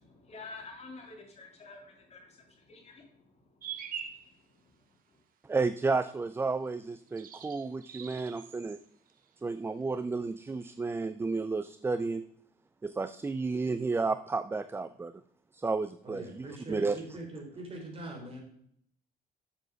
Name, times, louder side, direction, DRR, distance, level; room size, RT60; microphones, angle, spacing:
voice 1, 0.1-3.5 4.6-4.7, left 3 dB, 40° left, 2 dB, 2.6 m, -49 dB
sound 1, 3.6-4.3 7.0-8.8 9.1-9.7 10.6-10.7, right 8 dB, 55° right, 1.1 m, -43 dB
voice 2, 5.4-8.8 9.4-12.2 12.8-15.1 15.5-17.0, right 3 dB, 15° right, 12 dB, 0.4 m, -32 dB
voice 3, 16.0-18.4, right 2 dB, 35° right, 1 dB, 3.9 m, -42 dB
7.8 x 7.2 x 6.2 m, 0.67 s
cardioid pair, 110°, 17 cm